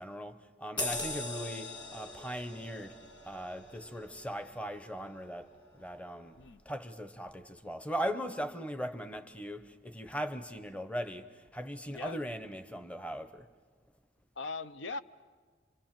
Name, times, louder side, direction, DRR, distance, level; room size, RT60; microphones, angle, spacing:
voice 1, 0.0-3.0 3.2-6.4 6.6-13.5, equal, 5° left, 0.9 m, -39 dB
sound 1, 0.8-5.7 6.2-6.3, left 2 dB, 20° left, 2.1 m, -41 dB
voice 2, 11.9-12.2 14.4-15.0, left 3 dB, 70° left, 0.7 m, -40 dB
30.0 x 25.0 x 7.5 m
head